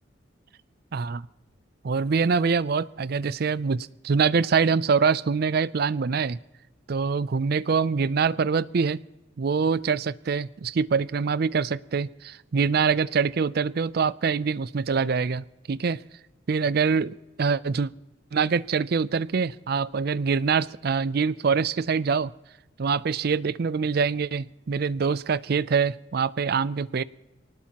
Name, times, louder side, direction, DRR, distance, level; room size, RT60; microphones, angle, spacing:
voice 1, 0.9-1.3 1.8-6.4 6.9-9.0 9.4-16.0 16.5-17.9 18.3-22.3 22.8-27.0, right 5 dB, 55° right, 18 dB, 0.4 m, -24 dB
24.5 x 19.0 x 2.9 m, 1.0 s
head